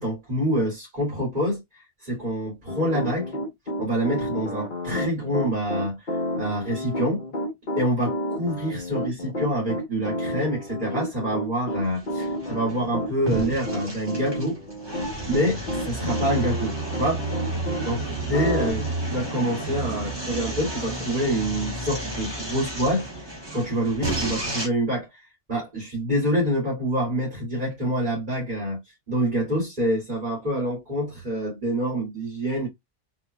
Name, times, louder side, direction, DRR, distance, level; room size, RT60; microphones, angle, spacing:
voice 1, 0.0-3.3 3.8-7.2 7.8-14.6 15.2-17.2 17.8-28.8 29.1-32.7, equal, 45° right, 2.7 m, -26 dB
Piano, 2.7-17.8 18.3-18.7, equal, 50° left, 1.3 m, -30 dB
sound 1, 11.6-24.7, right 2 dB, 25° right, 1.6 m, -32 dB
4.2 x 3.3 x 2.2 m
omnidirectional pair, 1.1 m